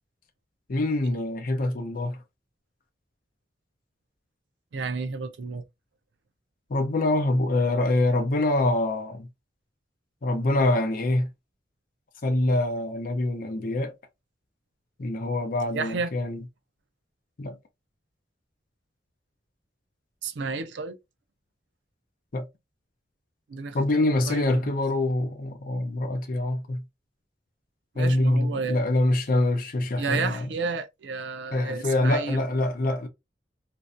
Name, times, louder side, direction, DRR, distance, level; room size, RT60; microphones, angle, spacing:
voice 1, 0.7-2.2 6.7-9.3 10.2-11.3 12.2-13.9 15.0-16.4 17.4-17.6 22.3-22.4 23.7-26.8 28.0-30.5 31.5-33.1, left 1 dB, 50° left, 0.6 m, -25 dB
voice 2, 4.7-5.6 15.7-16.1 20.2-21.0 23.5-24.7 27.9-28.8 30.0-32.4, right 4 dB, 70° right, 0.4 m, -32 dB
2.6 x 2.2 x 2.4 m
head